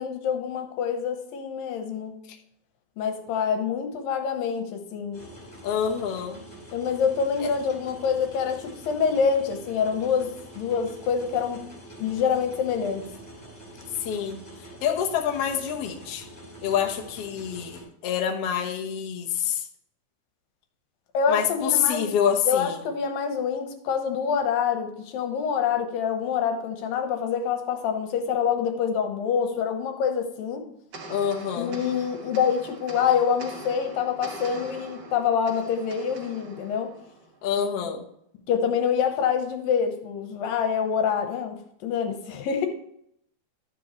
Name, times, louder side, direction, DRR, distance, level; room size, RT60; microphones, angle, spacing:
voice 1, 0.0-2.2 3.0-5.2 6.7-11.7 12.0-13.0 21.1-22.1 22.5-30.7 31.6-36.9 38.5-41.6 41.8-42.7, left 7 dB, 85° left, 6 dB, 2.8 m, -26 dB
sound 1, 5.1-17.8, right 1 dB, 15° left, 4.1 m, -45 dB
voice 2, 5.6-6.4 7.4-7.5 14.0-14.4 14.8-16.2 16.6-19.7 21.3-22.8 31.1-31.8 37.4-38.0, left 8 dB, 60° left, 1 dB, 1.7 m, -26 dB
sound 2, 30.9-37.6, right 3 dB, 75° right, 0.9 m, -43 dB
12.0 x 7.7 x 3.1 m, 0.72 s
omnidirectional pair, 4.0 m